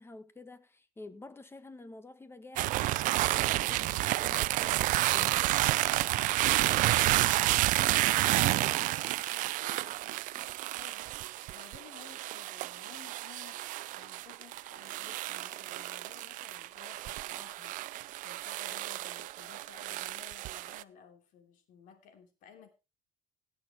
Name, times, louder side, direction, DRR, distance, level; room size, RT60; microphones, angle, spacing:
voice 1, 0.0-5.5, left 2 dB, 15° left, 1.5 m, -50 dB
sound 1, 2.6-20.8, right 17 dB, 70° right, 0.5 m, -30 dB
voice 2, 6.9-22.7, left 7 dB, 70° left, 3.2 m, -56 dB
17.5 x 6.6 x 4.4 m
cardioid pair, 105°, 14 cm